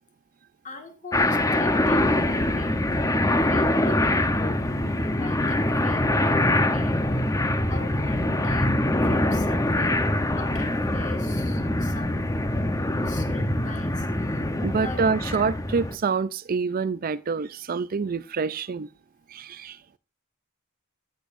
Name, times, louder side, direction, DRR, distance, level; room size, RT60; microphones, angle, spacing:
voice 1, 0.6-2.9 3.3-7.3 7.7-10.1 10.4-12.3 13.0-15.1, left 3 dB, 35° left, 1.9 m, -42 dB
sound 1, 1.1-16.0, left 1 dB, 15° left, 0.8 m, -24 dB
voice 2, 14.6-18.9 19.3-19.8, right 5 dB, 45° right, 0.5 m, -26 dB
15.5 x 10.5 x 2.6 m
head